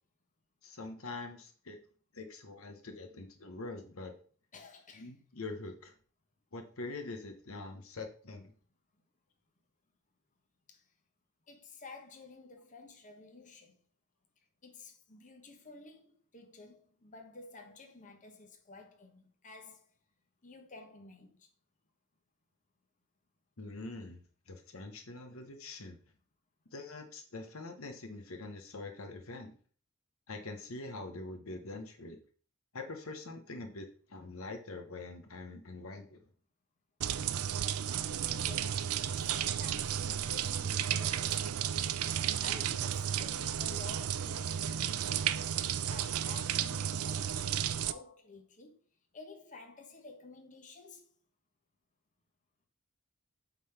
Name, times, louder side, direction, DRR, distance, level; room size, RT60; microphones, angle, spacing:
voice 1, 0.6-1.8 2.1-4.1 5.0-5.9 6.5-8.5 23.6-24.2 24.5-26.0 26.7-29.6 30.3-32.2 32.7-36.2, left 3 dB, 65° left, 1.1 m, -44 dB
voice 2, 4.5-5.1 10.7-10.9 11.5-13.8 14.6-19.9 20.4-21.5 38.2-41.6 42.4-45.3 45.8-48.8 49.1-51.1, left 3 dB, 35° left, 1.2 m, -52 dB
sound 1, 37.0-47.9, right 9 dB, 75° right, 0.5 m, -33 dB
8.2 x 3.9 x 5.7 m
head